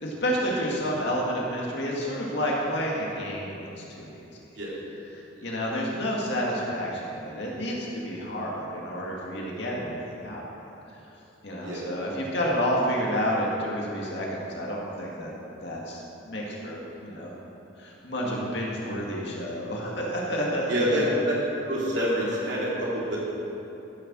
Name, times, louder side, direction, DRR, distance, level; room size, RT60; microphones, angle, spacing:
voice 1, 0.0-4.3 5.1-10.5 11.4-15.3 15.6-17.3 17.8-21.1, equal, 60° left, -3 dB, 2.2 m, -30 dB
voice 2, 20.7-21.3 21.6-23.2, equal, 70° right, -6 dB, 2.7 m, -27 dB
14.0 x 7.0 x 6.2 m, 3.0 s
head